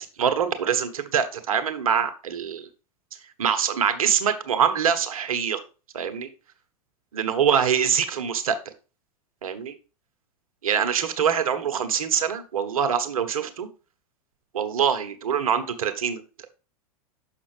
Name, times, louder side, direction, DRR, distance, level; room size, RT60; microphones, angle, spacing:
voice 1, 0.2-2.7 3.4-5.6 5.9-6.3 7.1-8.6 9.4-9.7 10.6-13.7 14.5-16.5, right 8 dB, 65° right, 9 dB, 1.0 m, -24 dB
6.7 x 5.8 x 3.2 m, 0.33 s
figure-of-eight pair, 90°, 19 cm